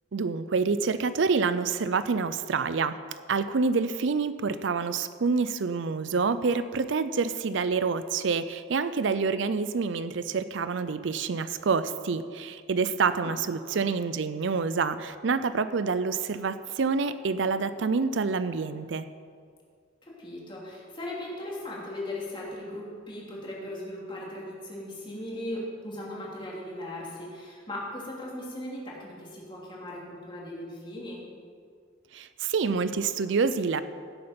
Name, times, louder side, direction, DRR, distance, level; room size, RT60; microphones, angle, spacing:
voice 1, 0.1-3.0 3.3-19.1 32.1-33.8, right 4 dB, 65° right, 13 dB, 0.5 m, -27 dB
voice 2, 13.2-13.8 20.0-31.2, left 1 dB, 25° left, -4 dB, 2.8 m, -38 dB
16.5 x 7.9 x 5.2 m, 2.1 s
head